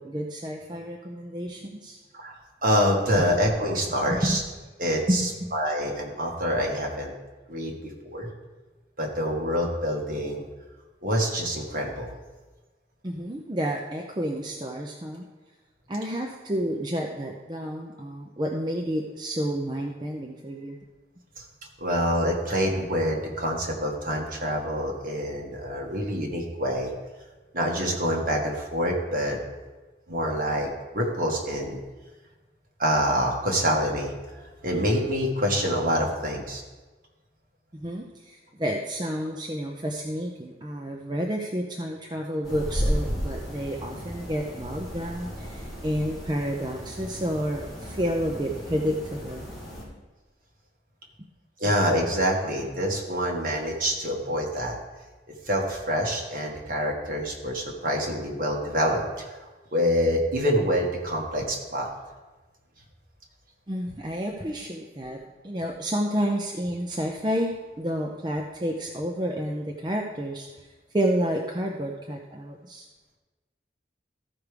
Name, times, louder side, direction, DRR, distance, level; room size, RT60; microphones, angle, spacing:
voice 1, 0.0-2.0 3.2-3.3 4.1-4.4 5.1-5.5 13.0-15.3 15.9-20.8 37.8-49.5 63.7-70.5 70.9-72.9, equal, 25° right, 0 dB, 0.6 m, -30 dB
voice 2, 2.1-4.4 4.8-5.2 5.5-7.1 7.5-8.3 9.0-10.5 11.0-12.1 21.4-21.5 21.8-26.9 27.5-29.4 30.1-31.8 32.8-36.6 51.6-54.8 55.4-59.4 59.7-61.9, equal, 50° right, -1 dB, 1.7 m, -26 dB
sound 1, 42.4-49.8, equal, ahead, 2.6 m, -34 dB
14.0 x 4.8 x 5.1 m, 1.2 s
head